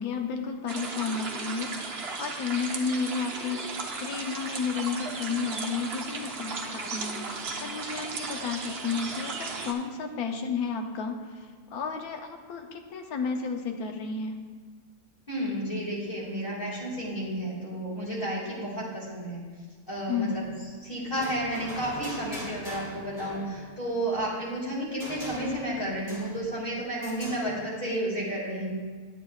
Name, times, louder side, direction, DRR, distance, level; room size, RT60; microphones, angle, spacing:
voice 1, 0.0-14.4 20.1-20.4, left 5 dB, 75° left, 4 dB, 1.2 m, -32 dB
sound 1, 0.7-9.7, right 4 dB, 55° right, 0.8 m, -36 dB
voice 2, 15.3-19.4 19.9-20.5 20.8-28.7, right 1 dB, 35° left, -6 dB, 2.5 m, -32 dB
sound 2, 20.3-20.7 21.1-23.7 25.0-26.6 27.0-27.5, equal, 55° left, 2.9 m, -41 dB
10.5 x 8.2 x 2.3 m, 1.6 s
omnidirectional pair, 1.7 m